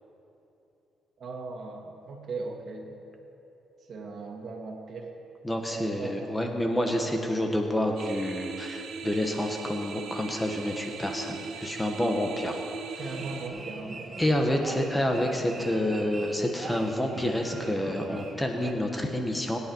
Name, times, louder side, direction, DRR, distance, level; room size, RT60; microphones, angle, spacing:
voice 1, 1.2-3.0 3.9-5.1 5.7-6.5 13.0-14.3 14.7-15.0, right 3 dB, 55° right, 1 dB, 2.1 m, -39 dB
voice 2, 5.4-12.6 14.2-19.6, left 1 dB, 10° left, 3 dB, 1.6 m, -28 dB
sound 1, 8.0-13.5, right 5 dB, 80° right, 1.2 m, -39 dB
sound 2, 13.0-18.7, right 3 dB, 40° right, 1.4 m, -42 dB
23.0 x 10.0 x 4.8 m, 2.9 s
cardioid pair, 90°, 0 cm